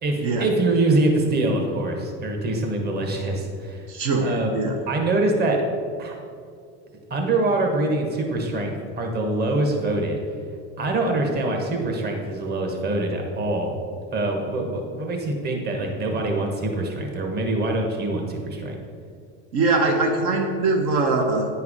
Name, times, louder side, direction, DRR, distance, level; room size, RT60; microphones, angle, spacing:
voice 1, 0.0-3.8 4.2-4.5 4.9-5.6 6.0-6.1 7.1-10.2 10.8-13.8 14.1-18.8, right 2 dB, 30° right, 2 dB, 1.3 m, -24 dB
voice 2, 3.9-4.8 19.5-21.5, right 3 dB, 65° right, 3 dB, 1.0 m, -22 dB
9.5 x 4.7 x 4.9 m, 2.2 s
supercardioid pair, 120°, 33 cm